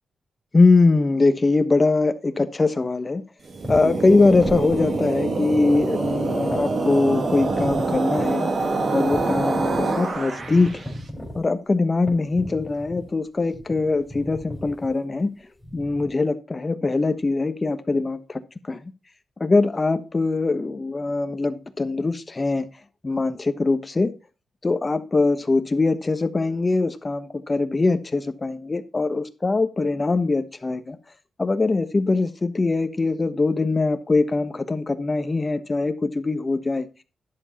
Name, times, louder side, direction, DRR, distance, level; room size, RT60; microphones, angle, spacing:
voice 1, 0.5-3.2 3.7-8.5 8.9-10.8 11.4-15.3 15.7-18.4 18.7-18.8 19.4-22.6 23.0-24.1 24.6-31.0 31.4-36.9, left 3 dB, 30° left, 10 dB, 1.1 m, -22 dB
sound 1, 3.5-4.9 5.2-5.3 5.6-6.7 7.2-8.3 8.6-8.7 9.1-9.9 10.1-11.4 12.1-13.1 13.5-14.9 15.6-16.1, equal, ahead, 4.7 m, -36 dB
sound 2, 3.5-10.8, right 3 dB, 55° right, 2.1 m, -25 dB
11.0 x 7.2 x 4.2 m, 0.31 s
cardioid pair, 90°, 0 cm